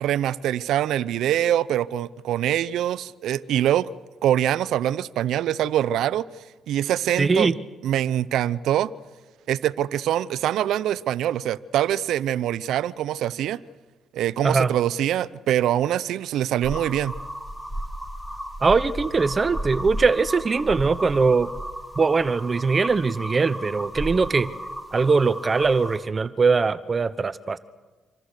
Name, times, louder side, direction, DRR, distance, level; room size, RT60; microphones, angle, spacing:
voice 1, 0.0-3.9 4.2-6.3 6.7-7.5 7.8-8.9 9.5-13.6 14.1-17.1, right 11 dB, 80° right, 0.7 m, -24 dB
voice 2, 7.2-7.5 14.4-14.7 18.6-21.5 22.0-24.5 24.9-27.6, right 4 dB, 35° right, 0.9 m, -21 dB
sound 1, 16.6-26.0, equal, ahead, 3.1 m, -34 dB
27.0 x 26.5 x 6.6 m
cardioid pair, 90°, 0 cm